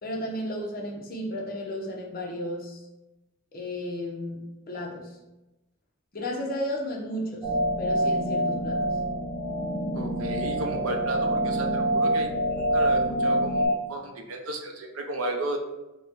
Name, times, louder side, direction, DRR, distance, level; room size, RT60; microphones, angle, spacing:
voice 1, 0.0-2.8 3.5-4.4 4.7-5.2 6.1-7.5 7.8-9.0, left 1 dB, 45° left, -1 dB, 0.8 m, -33 dB
sound 1, 7.4-13.6, right 1 dB, 20° right, 1.1 m, -26 dB
voice 2, 9.9-15.6, right 1 dB, 80° right, 3 dB, 0.6 m, -33 dB
4.2 x 2.2 x 4.6 m, 1.0 s
head